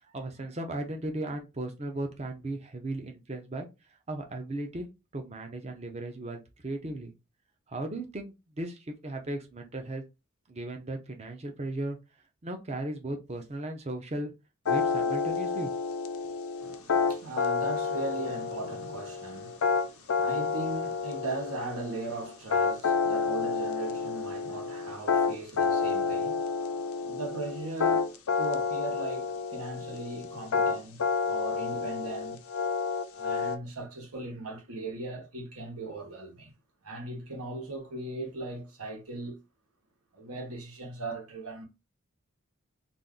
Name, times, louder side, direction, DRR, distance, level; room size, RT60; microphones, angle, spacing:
voice 1, 0.1-3.7 4.1-4.9 5.1-7.1 7.7-10.0 10.5-12.0 12.4-14.3 14.7-15.7 16.2-16.3, right 1 dB, 30° right, 0.5 m, -36 dB
sound 1, 14.6-33.6, left 5 dB, 75° left, 0.5 m, -29 dB
voice 2, 16.6-32.4 33.1-36.5 36.8-39.4 40.1-41.6, right 2 dB, 80° right, 1.1 m, -39 dB
2.5 x 2.4 x 3.6 m
head